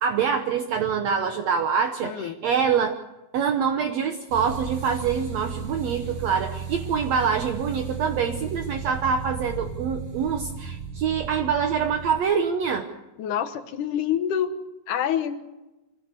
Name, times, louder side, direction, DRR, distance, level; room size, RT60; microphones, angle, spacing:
voice 1, 0.0-3.0 3.3-12.9, right 6 dB, 65° right, 6 dB, 2.0 m, -25 dB
voice 2, 2.0-2.4 13.2-14.5 14.9-15.4, left 9 dB, 75° left, 9 dB, 2.8 m, -26 dB
sound 1, 4.3-12.2, right 6 dB, 90° right, 6.8 m, -35 dB
25.5 x 16.5 x 6.7 m, 1.1 s
omnidirectional pair, 3.7 m